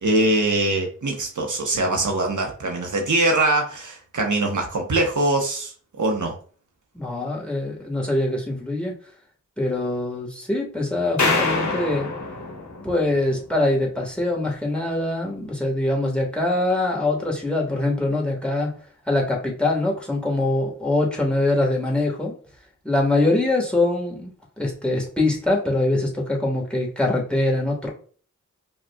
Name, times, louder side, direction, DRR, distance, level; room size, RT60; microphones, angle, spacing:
voice 1, 0.0-6.3, right 2 dB, 75° right, 1 dB, 0.8 m, -22 dB
voice 2, 6.9-9.0 9.6-12.1 12.8-18.7 19.1-22.3 22.8-27.9, left 2 dB, 5° left, 0 dB, 1.3 m, -23 dB
sound 1, 11.2-13.5, left 3 dB, 65° left, 0.9 m, -25 dB
5.0 x 2.4 x 2.2 m, 0.42 s
wide cardioid pair, 45°, 30 cm